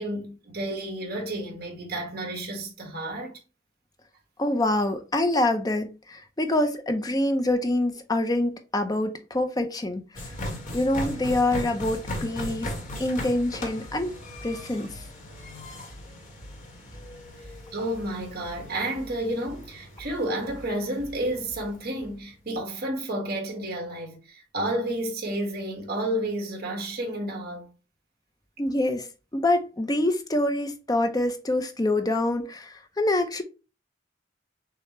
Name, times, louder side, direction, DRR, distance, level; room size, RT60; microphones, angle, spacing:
voice 1, 0.0-3.4 17.7-27.7, right 1 dB, 55° right, 1.7 m, -31 dB
voice 2, 4.4-10.2 10.7-12.7 13.0-14.1 14.4-15.0 28.6-33.4, left 1 dB, 20° left, 0.6 m, -26 dB
sound 1, 10.1-22.1, left 1 dB, 45° left, 1.3 m, -38 dB
6.5 x 2.3 x 3.0 m
head